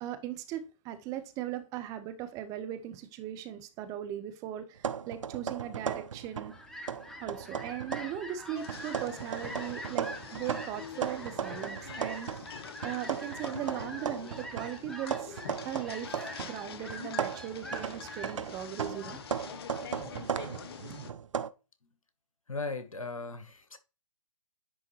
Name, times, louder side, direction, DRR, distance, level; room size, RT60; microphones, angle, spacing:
voice 1, 0.0-6.5 7.2-15.4 15.6-19.2, right 11 dB, 20° right, 0.6 m, -39 dB
sound 1, 4.8-6.6 6.9-8.2 8.7-12.5 12.8-16.6 16.9-21.5, right 7 dB, 65° right, 0.5 m, -36 dB
Fowl, 6.1-20.1, left 1 dB, 5° left, 0.9 m, -46 dB
sound 2, 8.5-21.1, left 7 dB, 50° left, 0.8 m, -46 dB
voice 2, 22.5-23.8, left 3 dB, 85° left, 1.2 m, -38 dB
10.0 x 3.5 x 3.1 m
figure-of-eight pair, 130°, 17 cm